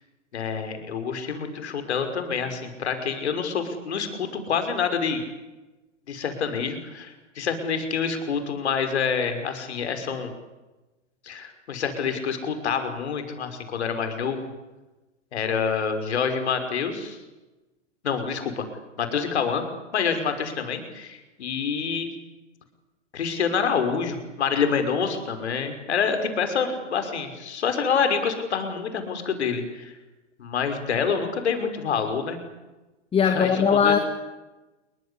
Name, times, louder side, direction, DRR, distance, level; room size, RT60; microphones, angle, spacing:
voice 1, 0.3-5.2 6.1-10.3 11.2-14.5 15.3-17.2 18.0-18.7 19.0-19.7 19.9-22.1 23.1-29.9 30.4-32.4 33.2-34.0, left 6 dB, 60° left, 7 dB, 5.8 m, -27 dB
voice 2, 33.1-34.0, left 7 dB, 15° left, 7 dB, 2.4 m, -19 dB
28.0 x 23.5 x 8.5 m, 1.1 s
figure-of-eight pair, 105°, 37 cm